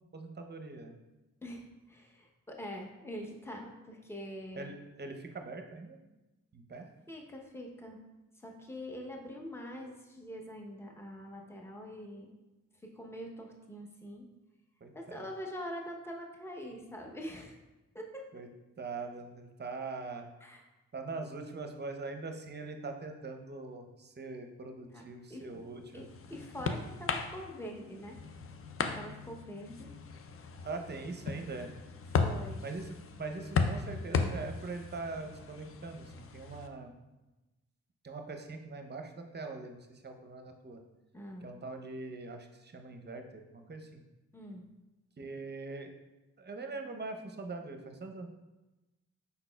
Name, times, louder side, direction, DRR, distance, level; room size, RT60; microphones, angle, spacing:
voice 1, 0.1-0.9 4.6-6.0 6.5-6.9 14.8-15.3 18.3-18.5 18.8-20.3 20.9-26.1 30.6-31.7 32.6-37.0 38.0-40.8 41.4-44.0 45.2-45.9 46.4-48.3, right 3 dB, 30° right, 5 dB, 0.7 m, -42 dB
voice 2, 1.4-4.7 7.1-8.0 8.4-12.3 12.8-14.3 14.9-17.6 17.9-18.3 20.4-20.6 24.9-25.0 25.3-25.5 25.9-28.2 28.9-29.9 32.2-32.7 41.1-41.5 44.3-44.6, equal, 10° left, 1 dB, 0.8 m, -44 dB
sound 1, 25.6-36.7, left 5 dB, 45° left, 0.5 m, -36 dB
5.4 x 4.0 x 2.3 m, 1.1 s
cardioid pair, 55°, 32 cm